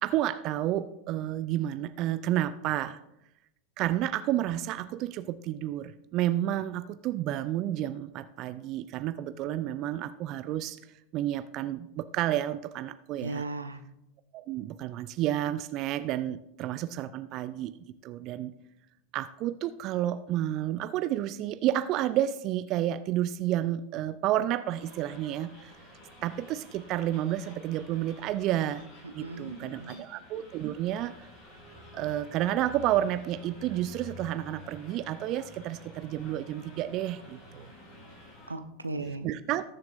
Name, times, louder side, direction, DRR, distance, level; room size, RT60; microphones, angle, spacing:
voice 1, 0.0-3.0 3.8-10.8 11.1-13.4 14.3-18.5 19.1-25.7 26.2-28.8 29.1-31.1 31.9-37.7 39.2-39.6, right 12 dB, 45° right, 13 dB, 0.4 m, -30 dB
voice 2, 13.2-13.8 29.0-30.0 38.5-39.3, right 2 dB, 85° right, 8 dB, 0.8 m, -37 dB
sound 1, 24.8-38.5, left 1 dB, 50° left, 3.7 m, -50 dB
19.5 x 7.2 x 2.5 m, 0.84 s
figure-of-eight pair, 85°, 0 cm